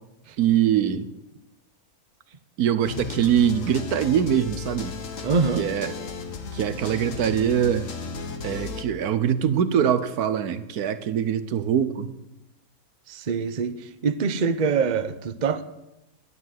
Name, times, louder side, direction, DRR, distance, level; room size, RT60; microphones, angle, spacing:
voice 1, 0.4-1.1 2.6-5.0 5.6-6.0 6.5-7.9 8.4-12.2, right 9 dB, 75° right, 1.4 m, -23 dB
sound 1, 2.9-8.8, left 5 dB, 55° left, 1.6 m, -35 dB
voice 2, 5.2-5.6 13.1-13.8 14.0-15.6, right 5 dB, 35° right, 0.8 m, -24 dB
12.0 x 9.8 x 9.4 m
omnidirectional pair, 1.6 m